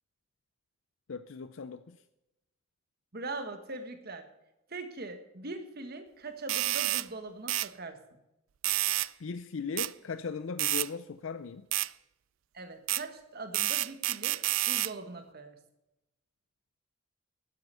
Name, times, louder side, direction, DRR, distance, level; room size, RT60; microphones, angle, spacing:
voice 1, 1.1-2.0 9.2-11.6, left 5 dB, 65° left, 11 dB, 0.5 m, -38 dB
voice 2, 3.1-4.3 4.7-8.0 12.5-14.4 14.7-15.6, right 2 dB, 50° right, 7 dB, 1.5 m, -41 dB
sound 1, 6.5-7.1 7.5-7.7 8.6-9.1 9.8-9.9 10.6-10.9 11.7-11.9 12.9-13.0 13.5-14.9, right 17 dB, 70° right, 0.4 m, -29 dB
12.0 x 9.7 x 6.8 m, 0.93 s
head